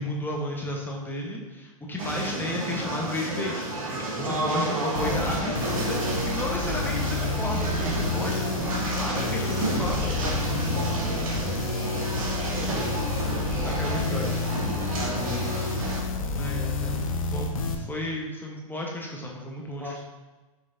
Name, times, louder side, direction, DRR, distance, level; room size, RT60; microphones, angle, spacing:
voice 1, 0.0-10.2 12.4-12.6 13.6-14.4 16.3-17.0 17.3-20.0, left 1 dB, 10° left, -1 dB, 1.2 m, -33 dB
sound 1, 2.0-16.0, right 2 dB, 70° right, 1.7 m, -31 dB
voice 2, 4.2-5.3 10.7-11.4 14.8-15.6 16.1-16.6 19.8-20.0, right 1 dB, 90° right, 0 dB, 1.5 m, -33 dB
sound 2, 5.0-17.8, left 3 dB, 70° left, 0.7 m, -29 dB
6.3 x 5.9 x 2.8 m, 1.2 s
figure-of-eight pair, 95°, 18 cm